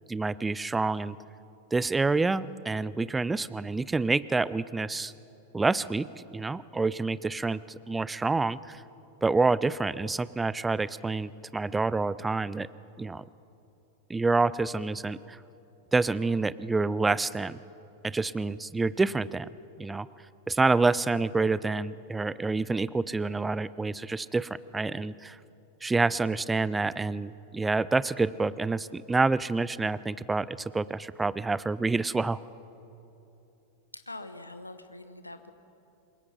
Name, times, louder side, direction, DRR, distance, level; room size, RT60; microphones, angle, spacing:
voice 1, 0.1-1.2 1.7-5.1 5.5-8.8 9.2-12.7 13.0-13.3 14.1-15.4 15.9-17.6 18.0-19.5 19.8-20.1 20.5-25.4 25.8-32.4, right 3 dB, 10° right, 18 dB, 0.5 m, -28 dB
voice 2, 33.9-35.5, left 2 dB, 85° left, 10 dB, 1.2 m, -43 dB
26.5 x 21.5 x 5.8 m, 2.9 s
figure-of-eight pair, 90°, 0 cm